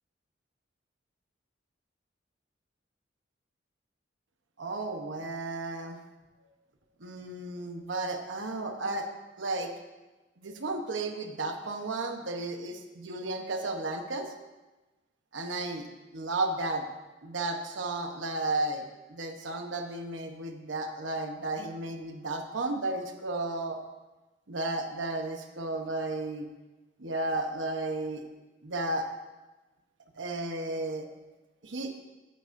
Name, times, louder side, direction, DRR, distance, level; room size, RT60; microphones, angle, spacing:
voice 1, 4.6-6.0 7.0-9.1 9.4-9.7 10.4-14.3 15.3-15.9 16.1-16.9 17.2-23.8 24.5-26.5 27.0-28.2 28.6-29.1 30.2-31.1 31.6-32.0, right 2 dB, 75° right, 5 dB, 1.0 m, -33 dB
14.5 x 9.0 x 2.6 m, 1.1 s
head